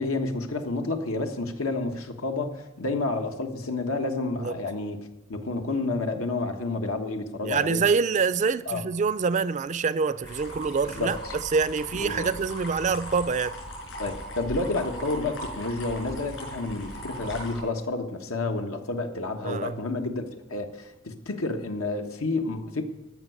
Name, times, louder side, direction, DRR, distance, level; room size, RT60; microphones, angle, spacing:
voice 1, 0.0-5.0 5.3-7.8 8.7-8.9 11.0-11.3 12.0-12.3 14.0-20.2 20.5-22.8, left 3 dB, 90° left, 1.4 m, -30 dB
voice 2, 7.4-13.6 19.4-19.8, right 5 dB, 35° right, 0.4 m, -26 dB
sound 1, 10.2-17.6, equal, 70° left, 5.5 m, -38 dB
14.5 x 5.9 x 9.3 m
head